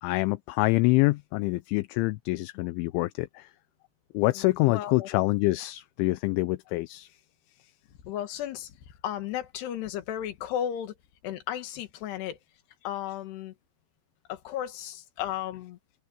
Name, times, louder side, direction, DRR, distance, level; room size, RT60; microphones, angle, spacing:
voice 1, 0.0-3.5 4.1-7.1, left 21 dB, 80° left, 3.0 m, -26 dB
voice 2, 4.4-5.1 8.0-8.7 9.0-11.0 11.2-12.4 12.8-13.5 14.3-15.8, left 11 dB, 65° left, 3.5 m, -34 dB
omnidirectional pair, 5.6 m